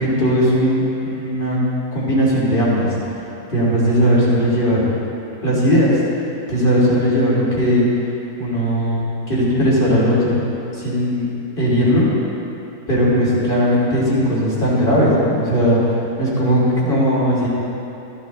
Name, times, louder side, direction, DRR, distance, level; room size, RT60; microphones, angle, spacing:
voice 1, 0.0-1.6 1.9-2.9 3.5-4.8 5.4-6.0 6.5-7.9 8.4-10.4 10.8-11.3 11.6-12.1 12.9-15.8 16.2-17.5, equal, 35° left, -7 dB, 3.3 m, -17 dB
14.5 x 12.5 x 3.4 m, 2.9 s
omnidirectional pair, 1.6 m